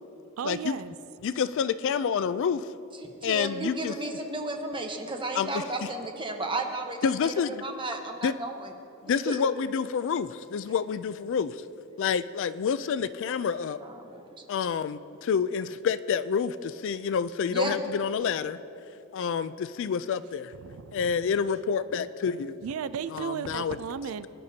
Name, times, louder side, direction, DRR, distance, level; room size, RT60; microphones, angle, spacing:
voice 1, 0.4-0.9 20.6-21.2 22.6-24.3, right 7 dB, 70° right, 14 dB, 0.4 m, -35 dB
voice 2, 1.2-2.7 3.2-3.9 5.4-5.9 7.0-7.6 8.2-8.3 9.0-11.6 12.0-13.8 14.5-18.6 19.1-20.5 20.9-22.6 23.1-23.8, left 6 dB, 60° left, 15 dB, 0.4 m, -28 dB
voice 3, 3.0-7.3 7.6-8.7 9.1-9.4 13.8-14.3 17.5-17.8, right 2 dB, 25° right, 3 dB, 1.0 m, -33 dB
22.0 x 10.5 x 2.8 m, 2.8 s
head